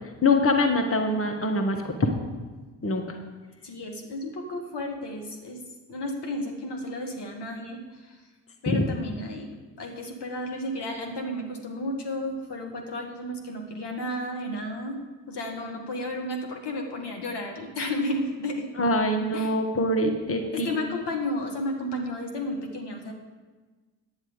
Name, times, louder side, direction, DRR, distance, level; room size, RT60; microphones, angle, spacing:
voice 1, 0.2-1.9 2.8-3.1 8.7-8.8 18.8-20.7, left 2 dB, 30° left, 4 dB, 1.6 m, -24 dB
voice 2, 3.6-5.6 5.9-8.2 8.6-15.0 15.3-18.7 19.3-19.6 20.5-23.1, left 1 dB, 55° left, 2 dB, 1.7 m, -33 dB
9.6 x 9.5 x 5.2 m, 1.3 s
hypercardioid pair, 40°, 48 cm